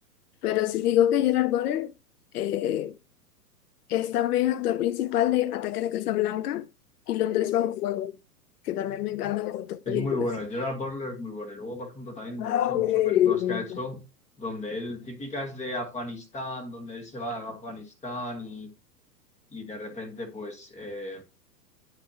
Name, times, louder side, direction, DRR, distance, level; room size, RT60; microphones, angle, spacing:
voice 1, 0.4-1.9 2.3-2.9 3.9-6.7 7.1-8.1 8.6-10.3 12.4-13.8, left 12 dB, 70° left, 0.7 m, -25 dB
voice 2, 9.8-14.0 14.4-18.7 19.5-21.2, left 1 dB, 15° left, 1.6 m, -35 dB
9.9 x 5.8 x 2.9 m
hypercardioid pair, 115°, 48 cm